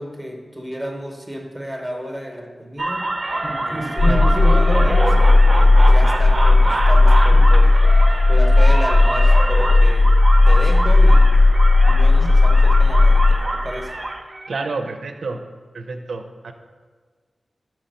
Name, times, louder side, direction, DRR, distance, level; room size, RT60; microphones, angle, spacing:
voice 1, 0.0-3.1 3.7-7.8 8.3-10.2 10.5-11.4 11.9-14.0, equal, ahead, 2 dB, 0.9 m, -32 dB
sound 1, 2.8-14.8, right 2 dB, 25° right, 0.5 m, -26 dB
sound 2, 4.0-13.4, left 2 dB, 60° left, 0.5 m, -13 dB
voice 2, 4.1-4.4 14.5-15.4 15.7-16.5, right 3 dB, 80° right, 6 dB, 0.5 m, -29 dB
6.1 x 4.3 x 5.2 m, 1.5 s
wide cardioid pair, 115°, 0 cm